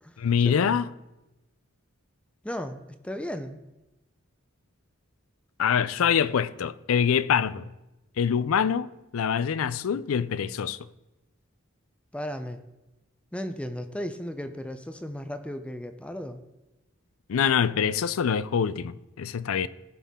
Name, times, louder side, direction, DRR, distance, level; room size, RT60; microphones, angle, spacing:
voice 1, 0.2-0.9 5.6-7.7 8.2-10.8 17.3-19.7, left 7 dB, 75° left, 0.4 m, -25 dB
voice 2, 2.4-3.6 12.1-12.6 13.3-16.4, equal, 5° left, 0.5 m, -35 dB
16.5 x 5.6 x 3.6 m
head